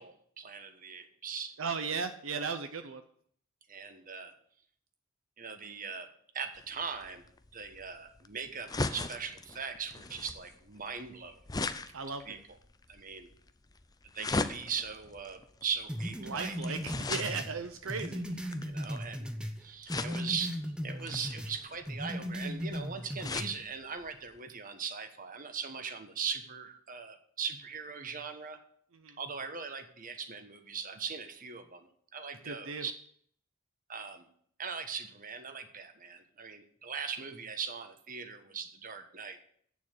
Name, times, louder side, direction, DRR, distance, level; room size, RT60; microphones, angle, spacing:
voice 1, 0.0-1.5 2.3-2.6 3.7-4.3 5.4-6.1 6.3-7.3 7.5-11.4 12.2-12.4 12.9-13.3 14.1-16.7 18.6-19.3 19.6-20.6 20.8-28.6 29.2-32.9 33.9-34.3 34.6-39.4, right 6 dB, 40° right, 8 dB, 1.3 m, -40 dB
voice 2, 1.6-3.0 11.9-12.4 16.2-18.4 28.9-29.2 32.4-32.8, right 5 dB, 70° right, 8 dB, 0.7 m, -36 dB
sound 1, 6.6-19.2 19.9-20.5 21.0-23.6 24.0-24.1 24.4-24.5, left 3 dB, 20° left, 0.5 m, -39 dB
sound 2, 15.9-19.6 19.9-21.5 21.9-23.5, equal, 5° right, 0.9 m, -37 dB
8.7 x 7.0 x 8.0 m, 0.62 s
head